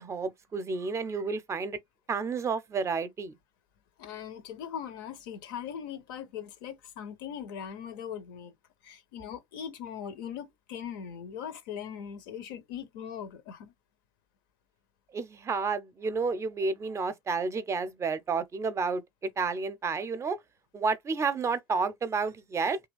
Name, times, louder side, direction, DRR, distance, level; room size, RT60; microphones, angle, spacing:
voice 1, 0.0-1.8 2.1-3.3 15.1-20.4 20.7-22.8, right 4 dB, 25° right, 0.5 m, -31 dB
voice 2, 4.0-8.5 8.8-13.7, left 8 dB, 60° left, 0.5 m, -40 dB
2.9 x 2.3 x 3.2 m
figure-of-eight pair, 65°, 12 cm